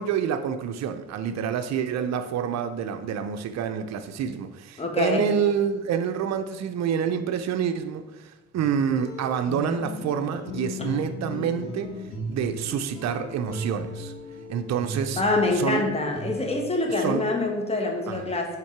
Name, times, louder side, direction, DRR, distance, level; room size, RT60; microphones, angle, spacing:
voice 1, 0.0-12.0 12.3-14.1 14.5-15.2 15.5-15.8 17.0-17.2 18.1-18.2, right 8 dB, 60° right, 0.6 m, -27 dB
voice 2, 4.8-5.3 15.2-18.6, left 2 dB, 20° left, 1.4 m, -25 dB
sound 1, 8.5-16.8, left 1 dB, 65° left, 1.9 m, -37 dB
5.9 x 3.6 x 5.8 m
cardioid pair, 90°, 30 cm